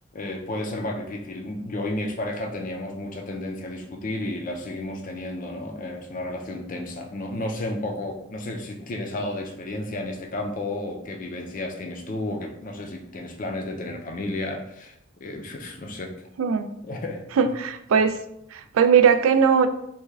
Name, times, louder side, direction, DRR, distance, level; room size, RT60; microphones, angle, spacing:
voice 1, 0.1-16.1 16.8-17.3, left 1 dB, 40° left, 3 dB, 0.4 m, -32 dB
voice 2, 17.4-18.1 18.5-19.7, right 6 dB, 75° right, 8 dB, 0.3 m, -19 dB
3.4 x 2.2 x 3.2 m, 0.76 s
head